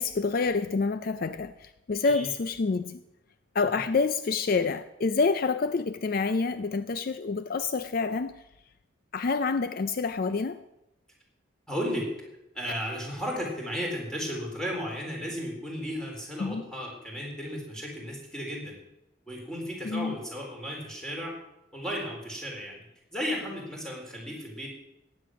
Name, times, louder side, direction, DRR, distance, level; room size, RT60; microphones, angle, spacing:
voice 1, 0.0-3.0 3.5-8.4 9.1-10.6 16.4-16.6 19.8-20.2, left 4 dB, 50° left, 0.4 m, -27 dB
voice 2, 11.7-12.1 12.5-18.8 19.3-21.3 21.7-22.9 23.1-24.7, equal, 5° left, 3.7 m, -34 dB
15.0 x 9.5 x 6.2 m
head